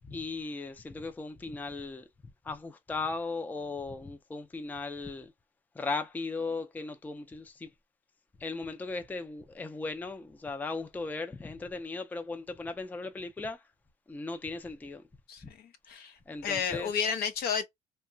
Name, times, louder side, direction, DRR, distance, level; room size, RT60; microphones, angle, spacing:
voice 1, 0.0-2.1 2.4-5.3 5.7-7.7 8.4-13.7 14.1-15.0 15.4-15.5 16.3-16.9, left 3 dB, 10° left, 0.4 m, -37 dB
voice 2, 15.3-16.1 16.4-17.6, left 6 dB, 65° left, 0.7 m, -32 dB
2.8 x 2.2 x 2.5 m
cardioid pair, 110°, 17 cm